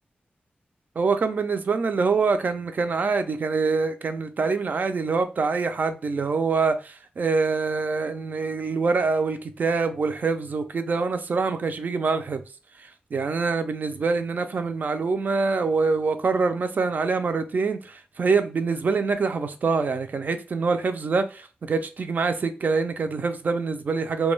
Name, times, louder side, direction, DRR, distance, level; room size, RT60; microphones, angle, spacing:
voice 1, 1.0-12.4 13.1-24.3, right 4 dB, 55° right, 0.4 m, -25 dB
2.2 x 2.2 x 3.1 m
wide cardioid pair, 95°, 4 cm